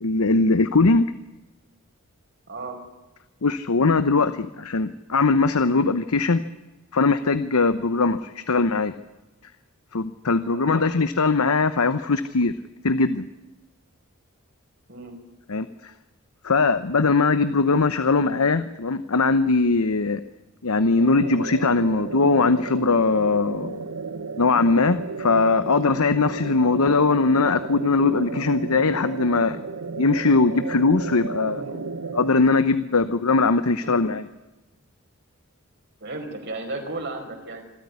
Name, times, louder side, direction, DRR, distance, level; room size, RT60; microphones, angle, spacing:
voice 1, 0.0-1.0 3.4-6.4 6.9-9.0 9.9-12.5 12.8-13.3 15.5-15.9 16.4-20.2 20.6-23.8 24.4-29.6 30.0-31.6 32.1-34.2, left 3 dB, 80° left, 12 dB, 0.9 m, -20 dB
voice 2, 2.5-2.8 7.8-8.1 10.5-10.9 14.9-15.2 26.6-26.9 31.5-31.8 33.8-34.0 36.0-37.6, right 2 dB, 50° right, 4 dB, 4.9 m, -35 dB
sound 1, 21.0-32.3, right 4 dB, 90° right, 1.1 m, -33 dB
26.0 x 13.5 x 9.7 m, 1.1 s
head